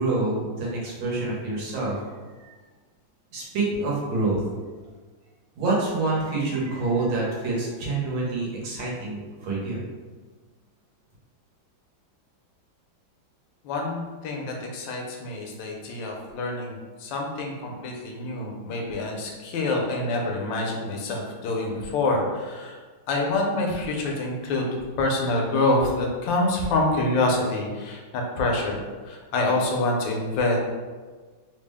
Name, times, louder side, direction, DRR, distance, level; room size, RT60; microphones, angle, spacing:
voice 1, 0.0-2.0 2.4-2.5 3.3-4.4 5.6-9.8, right 3 dB, 85° right, -5 dB, 1.8 m, -27 dB
voice 2, 13.6-16.7 17.0-22.8 23.1-24.7 25.0-28.8 29.1-30.6, left 2 dB, 75° left, 0 dB, 1.3 m, -26 dB
3.8 x 2.1 x 3.4 m, 1.4 s
omnidirectional pair, 2.2 m